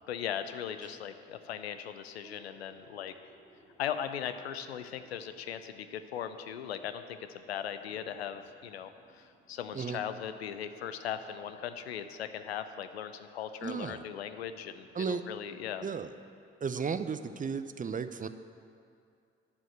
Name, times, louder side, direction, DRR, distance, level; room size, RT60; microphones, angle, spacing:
voice 1, 0.1-3.1 3.8-15.8, left 9 dB, 85° left, 10 dB, 0.5 m, -39 dB
sound 1, 2.2-5.8 6.7-6.8 7.9-11.8 12.8-12.9 13.6-16.2 16.7-16.8, right 2 dB, 85° right, 1.7 m, -62 dB
voice 2, 13.6-14.0 14.9-15.2 15.8-16.1 16.6-18.3, right 6 dB, 25° right, 11 dB, 0.6 m, -34 dB
12.0 x 5.1 x 7.9 m, 2.4 s
figure-of-eight pair, 40°, 31 cm